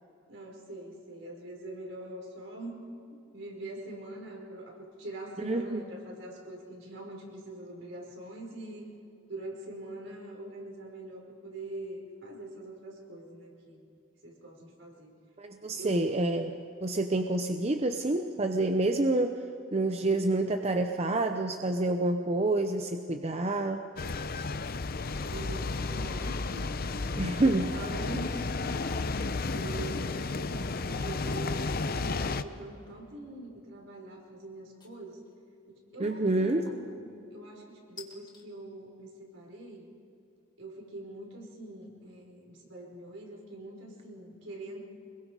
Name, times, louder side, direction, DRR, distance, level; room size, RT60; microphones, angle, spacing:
voice 1, 0.3-2.8 3.1-8.9 9.3-13.8 14.2-15.2 15.7-16.1 25.1-35.2 35.7-39.9 40.6-44.8, right 2 dB, 70° right, -1 dB, 5.2 m, -43 dB
voice 2, 5.4-5.8 15.4-19.4 19.7-23.8 27.2-27.7 36.0-36.7, right 2 dB, 30° right, 5 dB, 0.8 m, -28 dB
sound 1, 24.0-32.4, left 3 dB, 50° left, 0.7 m, -33 dB
sound 2, 32.6-33.1 34.8-35.3 36.7-37.0 38.0-38.5, left 4 dB, 20° left, 1.9 m, -51 dB
25.5 x 22.0 x 4.9 m, 2.7 s
head